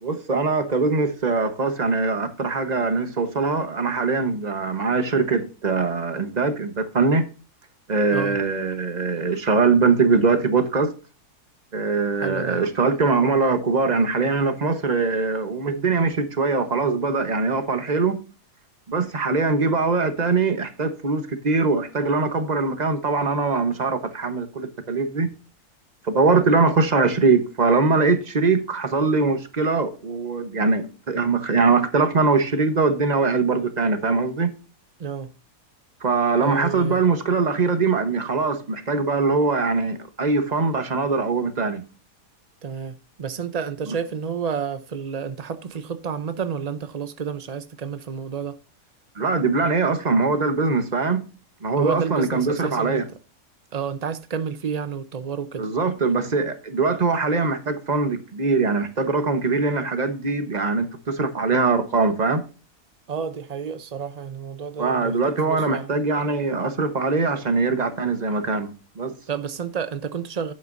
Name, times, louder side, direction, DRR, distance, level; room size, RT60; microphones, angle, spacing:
voice 1, 0.0-7.3 7.9-10.9 11.7-18.2 18.9-25.3 26.0-34.5 36.0-41.8 49.1-51.3 51.6-53.0 55.6-62.4 64.8-69.1, right 4 dB, 30° right, 1.0 m, -22 dB
voice 2, 8.1-8.4 12.2-12.6 35.0-35.3 36.4-37.0 42.6-48.6 51.8-53.0 53.7-55.7 63.1-65.9 69.3-70.5, right 6 dB, 75° right, 0.3 m, -30 dB
11.0 x 8.7 x 2.6 m
omnidirectional pair, 1.7 m